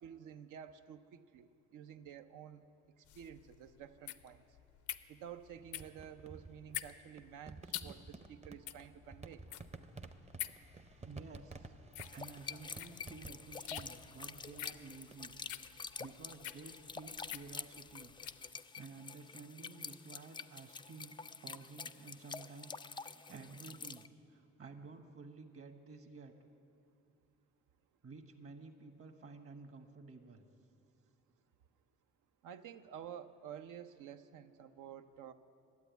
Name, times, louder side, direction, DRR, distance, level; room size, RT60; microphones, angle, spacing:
voice 1, 0.0-2.6 3.1-4.4 5.1-9.4 13.9-14.0 32.4-35.3, right 9 dB, 90° right, 10 dB, 0.6 m, -51 dB
sound 1, 3.0-18.5, left 13 dB, 85° left, 0.6 m, -47 dB
sound 2, 5.6-15.2, right 3 dB, 20° right, 0.6 m, -53 dB
voice 2, 11.0-11.7 12.1-18.1 18.4-22.7 23.0-26.3 28.0-30.5, right 4 dB, 50° right, 6 dB, 1.3 m, -53 dB
sound 3, 12.0-24.1, left 5 dB, 15° left, 0.3 m, -48 dB
12.5 x 8.2 x 9.2 m, 2.5 s
cardioid pair, 90°, 30 cm